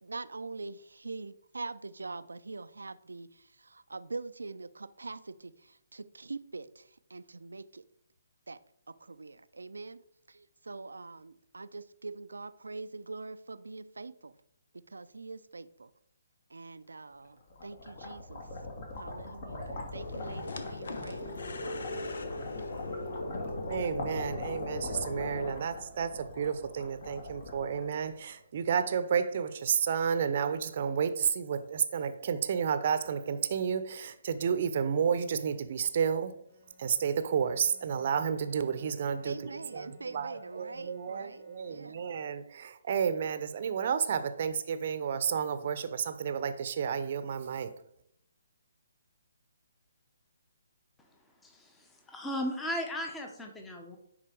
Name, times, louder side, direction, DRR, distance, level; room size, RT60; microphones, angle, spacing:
voice 1, 0.0-7.9 8.5-8.6 8.9-10.0 10.3-14.4 14.7-15.9 16.5-18.5 19.0-22.7 39.2-42.0, right 3 dB, 75° right, 0.5 m, -44 dB
sound 1, 17.3-28.4, left 2 dB, 45° left, 2.3 m, -42 dB
sound 2, 20.0-25.5, left 2 dB, 60° left, 1.0 m, -39 dB
voice 2, 23.7-36.4 36.8-47.7, right 7 dB, 45° right, 0.8 m, -31 dB
Bowed string instrument, 36.5-42.3, left 4 dB, 30° left, 2.8 m, -60 dB
voice 3, 51.4-54.0, equal, 10° left, 1.1 m, -36 dB
10.0 x 4.3 x 4.6 m
figure-of-eight pair, 135°, 0 cm